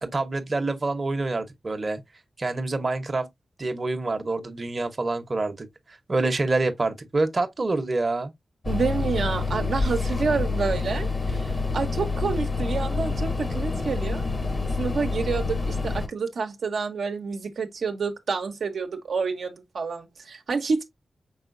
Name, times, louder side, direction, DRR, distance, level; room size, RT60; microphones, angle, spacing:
voice 1, 0.0-2.0 2.4-3.3 3.6-8.3, right 2 dB, 40° right, 0.8 m, -27 dB
sound 1, 8.6-16.1, left 4 dB, 35° left, 0.8 m, -27 dB
voice 2, 8.7-14.2 14.8-20.8, right 5 dB, 80° right, 0.8 m, -28 dB
5.5 x 3.7 x 2.4 m
cardioid pair, 75°, 0 cm